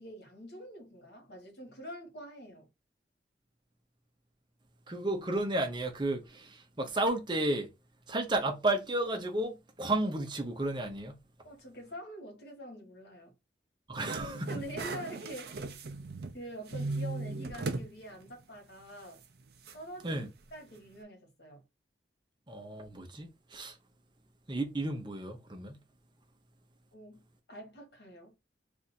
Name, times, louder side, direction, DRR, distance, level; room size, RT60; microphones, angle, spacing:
voice 1, 0.0-2.7 11.4-13.3 14.5-15.6 16.3-19.2 19.7-21.6 26.9-27.2 27.5-28.4, equal, 65° left, 1.4 m, -46 dB
voice 2, 4.9-7.7 8.1-11.2 13.9-14.5 20.0-20.3 22.5-23.8 24.5-25.8, right 2 dB, 25° right, 0.7 m, -32 dB
sound 1, 13.9-16.4 16.7-17.9 18.3-18.4 19.7-19.8, right 3 dB, 60° right, 0.5 m, -37 dB
2.6 x 2.5 x 4.1 m
head